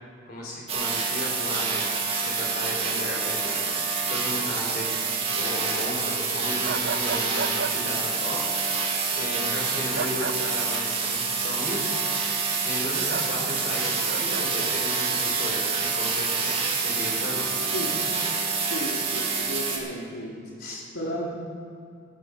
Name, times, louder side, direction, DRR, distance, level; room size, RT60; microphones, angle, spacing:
voice 1, 0.3-5.0 5.3-8.9 9.1-12.3 12.6-17.5 20.6-20.8, left 1 dB, 50° left, -1 dB, 4.0 m, -35 dB
sound 1, 0.7-19.8, right 5 dB, 30° right, 2.0 m, -27 dB
sound 2, 6.6-7.7 9.9-10.4 13.1-13.3 14.1-14.5, right 5 dB, 50° right, 0.6 m, -32 dB
voice 2, 18.7-20.4 20.9-21.2, equal, 75° left, -4 dB, 2.2 m, -33 dB
13.5 x 11.5 x 5.9 m, 2.5 s
head